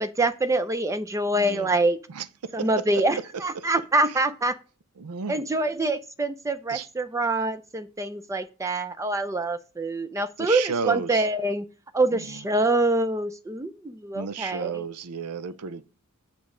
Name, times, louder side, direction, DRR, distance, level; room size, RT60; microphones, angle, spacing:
voice 1, 0.0-2.0 2.5-4.6 5.3-11.7 11.9-14.8, right 2 dB, 15° right, 0.4 m, -25 dB
voice 2, 1.3-1.7 2.1-2.3 2.6-2.8 3.6-3.7 5.0-5.4 6.7-6.9 10.4-11.2 12.1-12.4 14.1-15.8, right 5 dB, 85° right, 0.6 m, -32 dB
8.3 x 5.9 x 3.8 m
head